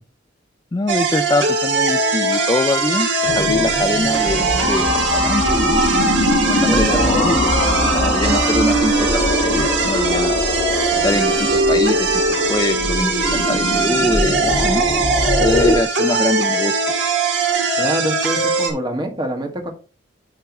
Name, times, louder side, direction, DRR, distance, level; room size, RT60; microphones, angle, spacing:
voice 1, 0.7-5.8 6.4-7.6 7.9-10.4 11.0-14.8 15.4-16.8, left 2 dB, 20° left, 10 dB, 0.3 m, -23 dB
sound 1, 0.9-18.7, right 3 dB, 70° right, 1.8 m, -20 dB
sound 2, 3.3-15.8, left 1 dB, 50° left, 2.9 m, -22 dB
voice 2, 6.7-7.3 8.3-8.4 17.8-19.7, equal, 25° right, 3 dB, 1.7 m, -25 dB
10.5 x 3.5 x 4.1 m, 0.34 s
head